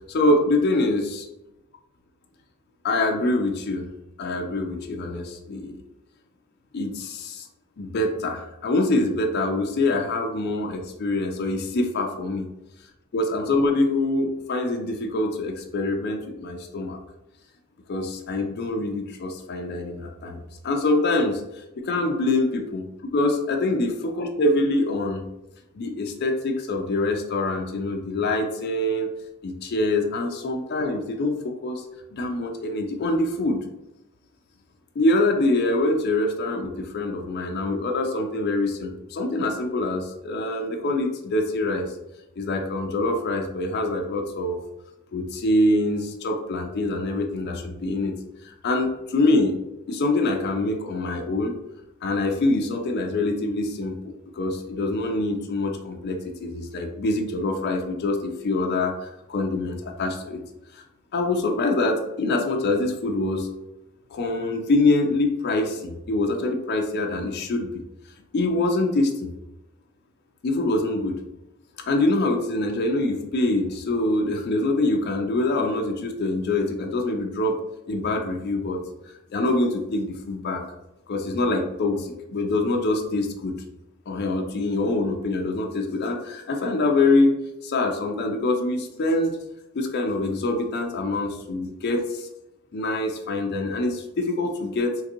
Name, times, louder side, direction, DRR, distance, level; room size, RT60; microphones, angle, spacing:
voice 1, 0.1-1.2 2.8-3.9 4.2-5.7 6.7-7.5 7.8-12.5 13.1-17.0 17.9-21.4 21.8-22.8 23.1-25.2 25.7-29.1 29.4-31.8 32.1-33.6 35.0-41.9 42.4-44.6 45.1-48.1 48.4-49.5 49.9-51.5 52.0-60.4 60.7-60.8 61.1-63.5 64.1-67.7 68.3-69.3 70.4-71.2 71.9-77.6 77.9-80.6 81.1-83.5 84.1-87.3 87.6-89.3 89.7-92.3 92.7-95.0, left 2 dB, 55° left, 2 dB, 0.4 m, -25 dB
3.7 x 2.5 x 2.8 m, 0.94 s
head